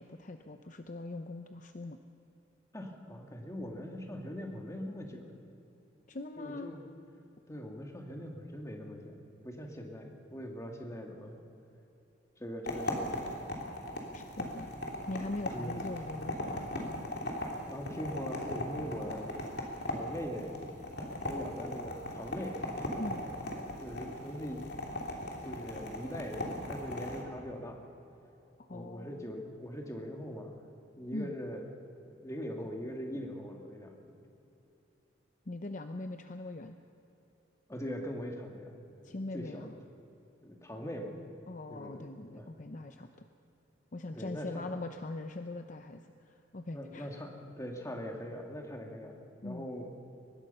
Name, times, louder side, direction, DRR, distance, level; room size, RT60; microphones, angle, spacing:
voice 1, 0.0-2.0 6.1-6.7 14.1-14.7 15.1-17.1 23.0-23.3 28.6-29.2 31.1-31.4 35.5-36.8 39.0-39.8 41.5-43.3 43.9-47.2 49.4-49.7, left 2 dB, 40° left, 7 dB, 0.7 m, -41 dB
voice 2, 2.7-5.3 6.4-6.8 7.5-9.2 9.4-11.5 12.4-13.3 15.5-15.9 17.7-19.4 19.8-20.6 21.2-22.6 23.8-24.8 25.4-27.8 28.7-30.6 30.9-31.7 32.1-34.1 37.7-38.7 39.0-39.7 40.4-41.2 41.7-42.5 44.1-44.6 46.7-49.2 49.4-49.9, equal, 15° left, 2 dB, 2.2 m, -41 dB
sound 1, 12.6-27.2, left 1 dB, 60° left, 3.0 m, -39 dB
23.5 x 20.0 x 5.6 m, 2.9 s
head